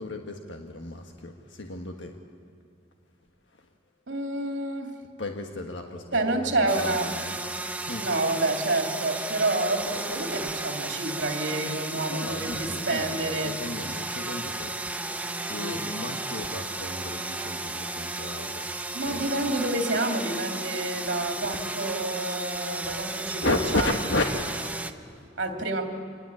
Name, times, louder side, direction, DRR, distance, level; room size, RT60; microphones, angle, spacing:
voice 1, 0.0-2.2 3.4-3.7 5.2-7.4 7.7-8.1 11.9-14.8 15.4-18.7 19.1-19.5 21.0-21.1 22.8-23.0 23.3-25.3, left 2 dB, 75° left, 3 dB, 1.5 m, -34 dB
voice 2, 4.1-4.9 6.1-7.1 8.0-13.5 15.5-15.8 18.9-23.9 25.4-25.9, right 2 dB, 70° right, 3 dB, 2.7 m, -28 dB
sound 1, 6.7-24.9, right 2 dB, 10° right, 0.8 m, -34 dB
26.5 x 20.0 x 8.4 m, 2.4 s
head